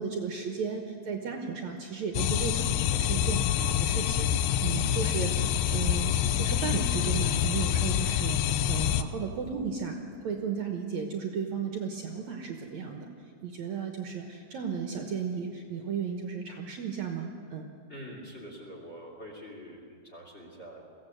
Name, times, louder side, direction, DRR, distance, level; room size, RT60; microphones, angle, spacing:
voice 1, 0.0-4.3 4.6-10.0 10.2-13.1 13.4-17.6, right 6 dB, 65° right, 4 dB, 2.1 m, -34 dB
sound 1, 2.1-9.0, left 10 dB, 80° left, 1.7 m, -26 dB
voice 2, 17.9-20.9, equal, 20° left, 1 dB, 2.9 m, -45 dB
22.5 x 16.0 x 7.9 m, 2.3 s
omnidirectional pair, 4.1 m